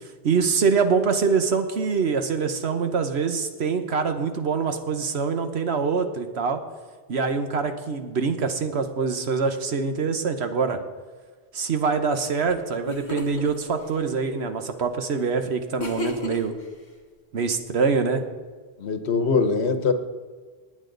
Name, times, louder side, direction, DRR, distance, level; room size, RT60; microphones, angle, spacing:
voice 1, 0.2-6.6 7.1-10.8 11.5-16.5 17.3-18.2, right 5 dB, 80° right, 7 dB, 1.3 m, -24 dB
sound 1, 12.5-12.6 12.8-13.5 15.8-16.6, left 2 dB, 30° left, 1.5 m, -31 dB
voice 2, 18.8-19.9, left 4 dB, 85° left, 8 dB, 1.2 m, -22 dB
19.5 x 8.9 x 3.9 m, 1.5 s
omnidirectional pair, 1.1 m